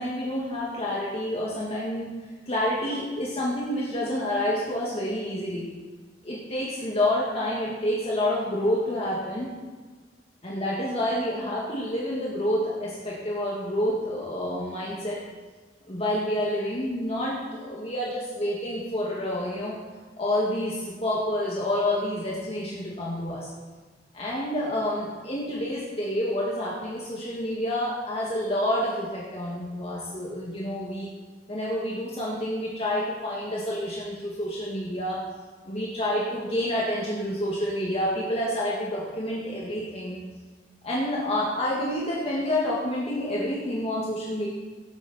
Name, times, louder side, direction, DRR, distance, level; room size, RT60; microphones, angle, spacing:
voice 1, 0.0-2.1 2.5-5.6 6.2-9.5 10.4-15.2 15.9-19.7 20.2-23.5 24.1-31.1 31.5-35.2 35.7-40.2 40.8-44.5, left 1 dB, 35° left, -5 dB, 2.2 m, -28 dB
18.0 x 8.6 x 4.5 m, 1.4 s
head